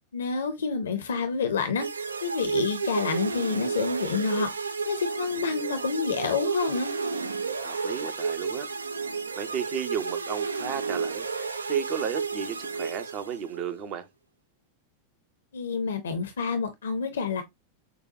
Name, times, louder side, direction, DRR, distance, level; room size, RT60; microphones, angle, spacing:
voice 1, 0.1-1.9 2.2-4.5 4.8-6.9 15.5-17.4, left 5 dB, 65° left, 0.6 m, -28 dB
sound 1, 1.8-13.6, right 5 dB, 75° right, 0.4 m, -32 dB
voice 2, 7.6-8.7 9.4-11.3 11.7-14.1, right 7 dB, 40° right, 0.7 m, -33 dB
6.8 x 2.3 x 2.6 m
figure-of-eight pair, 90°, 0 cm